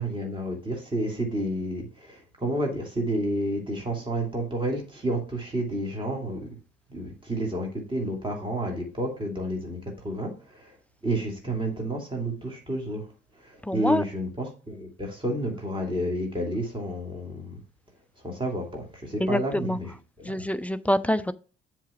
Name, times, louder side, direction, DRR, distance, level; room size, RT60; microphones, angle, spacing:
voice 1, 0.0-6.6 6.9-10.8 11.0-17.6 18.2-19.9 20.2-20.5, right 1 dB, 15° right, 0 dB, 2.6 m, -30 dB
voice 2, 13.6-14.0 19.2-19.8 20.2-21.3, equal, 5° left, 14 dB, 0.3 m, -26 dB
7.3 x 3.6 x 5.8 m, 0.36 s
figure-of-eight pair, 50°, 32 cm